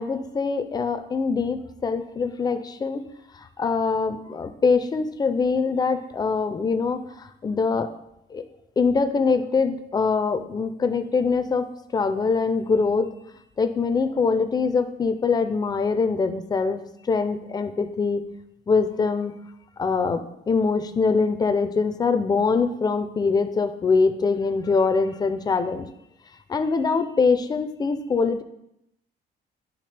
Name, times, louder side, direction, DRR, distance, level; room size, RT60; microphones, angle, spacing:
voice 1, 0.0-3.0 3.6-7.9 8.3-8.4 8.8-11.7 11.9-13.1 13.6-16.8 17.1-18.2 18.7-19.3 19.8-25.9 26.5-28.4, left 4 dB, 20° left, 9 dB, 0.4 m, -23 dB
10.0 x 3.6 x 3.3 m, 0.81 s
cardioid pair, 160°, 18 cm